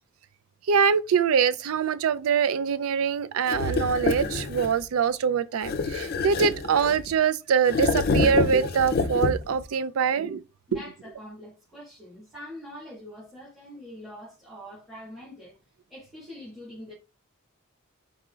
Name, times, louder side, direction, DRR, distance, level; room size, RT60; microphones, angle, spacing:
voice 1, 0.7-10.4 10.7-10.8, right 6 dB, 80° right, 0.4 m, -24 dB
sound 1, 3.5-4.8 5.6-7.1 7.6-9.6, left 3 dB, 45° left, 0.5 m, -27 dB
voice 2, 10.7-15.5 15.9-16.9, equal, ahead, 1.9 m, -44 dB
4.9 x 4.1 x 2.4 m
head